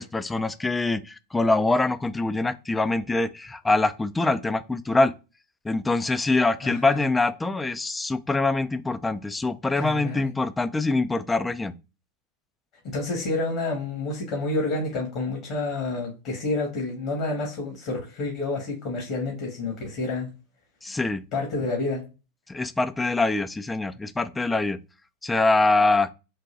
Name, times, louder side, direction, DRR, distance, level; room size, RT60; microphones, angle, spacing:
voice 1, 0.0-5.1 5.6-11.7 20.8-21.2 22.5-24.8 25.2-26.1, left 3 dB, 10° left, 0.3 m, -24 dB
voice 2, 6.6-7.0 9.8-10.3 12.8-20.3 21.3-22.0, left 2 dB, 55° left, 1.4 m, -29 dB
3.9 x 2.3 x 2.5 m
hypercardioid pair, 105°, 0 cm